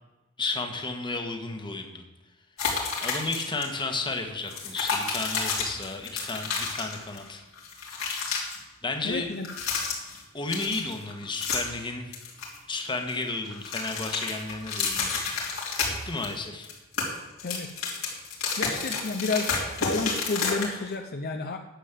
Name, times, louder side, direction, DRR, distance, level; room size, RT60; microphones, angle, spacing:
voice 1, 0.4-2.0 3.0-7.4 8.8-9.3 10.3-12.1 12.7-15.2 16.0-16.7, left 3 dB, 25° left, 4 dB, 1.5 m, -32 dB
sound 1, 2.6-3.6 3.9-4.1 4.5-7.3 7.5-8.6 9.3-10.2 10.5-11.8 12.1-13.2 13.5-16.3 16.6-20.9, left 4 dB, 70° left, 3.3 m, -30 dB
voice 2, 9.0-9.5 17.4-17.7 18.6-21.6, left 3 dB, 50° left, 5 dB, 0.7 m, -31 dB
10.5 x 7.5 x 7.5 m, 1.1 s
head